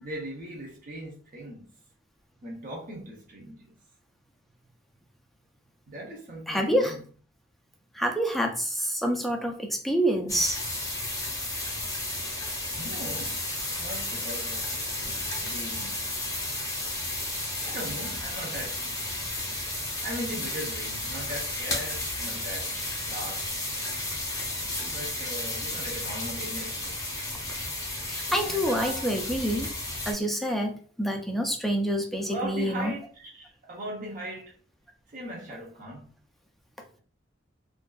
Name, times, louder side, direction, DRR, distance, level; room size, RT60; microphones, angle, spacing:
voice 1, 0.0-1.7 2.4-3.8 5.9-7.0 12.8-13.4 13.8-14.7 15.4-16.0 17.7-18.8 20.0-23.8 24.8-27.0 28.5-29.2 32.3-34.6 35.1-36.1, right 1 dB, 45° right, 0.6 m, -39 dB
voice 2, 6.5-6.9 7.9-10.6 15.0-15.1 28.1-29.7 30.1-32.9, equal, ahead, 0.3 m, -27 dB
sound 1, 10.3-30.1, left 1 dB, 15° left, 0.7 m, -33 dB
2.5 x 2.3 x 2.2 m
head